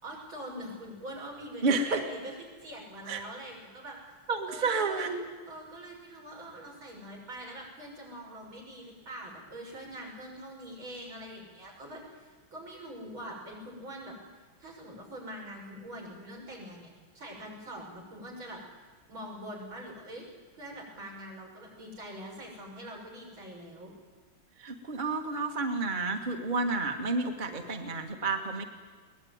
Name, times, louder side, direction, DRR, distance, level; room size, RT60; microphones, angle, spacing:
voice 1, 0.0-4.0 4.5-5.1 5.5-14.2 14.6-18.6 19.1-20.3 20.5-23.9, right 1 dB, 70° right, -1 dB, 7.1 m, -44 dB
voice 2, 1.6-2.0 3.1-3.2 4.3-5.2 24.6-28.6, right 3 dB, 25° right, 5 dB, 1.5 m, -30 dB
22.0 x 19.5 x 9.4 m, 1.4 s
omnidirectional pair, 2.3 m